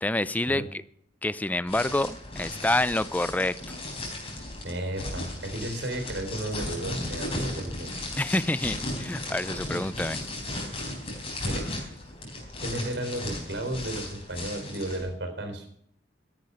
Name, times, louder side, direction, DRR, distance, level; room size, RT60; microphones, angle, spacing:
voice 1, 0.0-0.8 1.2-3.5 8.2-10.2, left 1 dB, 10° left, 0.4 m, -27 dB
sound 1, 1.7-15.0, left 1 dB, 35° left, 4.0 m, -36 dB
voice 2, 4.6-7.9 11.4-11.7 12.6-15.7, right 1 dB, 80° right, 3.9 m, -33 dB
13.5 x 10.5 x 5.4 m
head